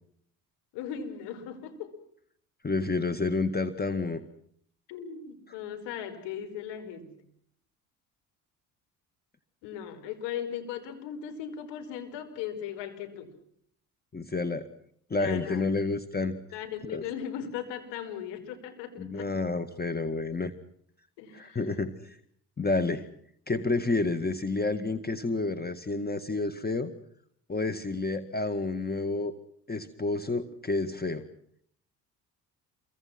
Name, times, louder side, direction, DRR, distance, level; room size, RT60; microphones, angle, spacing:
voice 1, 0.7-2.0 4.9-7.1 9.6-13.3 15.1-15.6 16.5-19.4 21.2-21.8, left 8 dB, 75° left, 7 dB, 5.3 m, -38 dB
voice 2, 2.6-4.2 14.1-14.7 15.1-16.4 16.9-17.0 19.0-20.5 21.3-22.2 22.6-23.1 23.5-26.9 27.5-29.3 29.7-31.2, left 3 dB, 20° left, 10 dB, 2.1 m, -29 dB
28.0 x 24.5 x 6.0 m, 0.65 s
hypercardioid pair, 60°, 43 cm